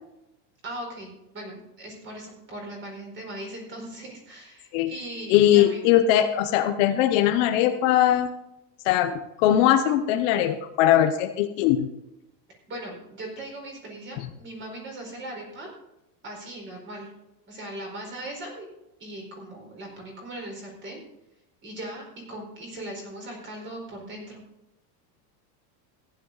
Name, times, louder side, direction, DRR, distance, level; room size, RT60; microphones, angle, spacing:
voice 1, 0.6-5.8 12.7-15.7 16.2-17.1 17.5-18.7 19.0-21.0 21.6-24.4, right 1 dB, 25° right, 0 dB, 4.6 m, -39 dB
voice 2, 5.3-8.3 8.8-11.9, left 11 dB, 50° left, 7 dB, 1.0 m, -20 dB
15.0 x 10.5 x 4.0 m, 0.89 s
supercardioid pair, 165°, 49 cm